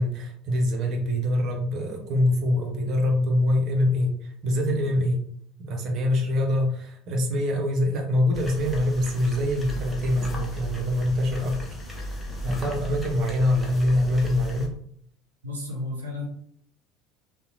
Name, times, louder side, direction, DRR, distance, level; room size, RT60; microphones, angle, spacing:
voice 1, 0.0-5.2 5.6-11.6 11.8-12.1 12.4-14.7, left 1 dB, 50° right, 1 dB, 0.7 m, -24 dB
sound 1, 8.3-14.7, equal, 10° left, 0.8 m, -36 dB
voice 2, 15.4-16.3, left 2 dB, 85° right, -1 dB, 0.5 m, -32 dB
2.7 x 2.1 x 2.5 m, 0.64 s
figure-of-eight pair, 65°, 0 cm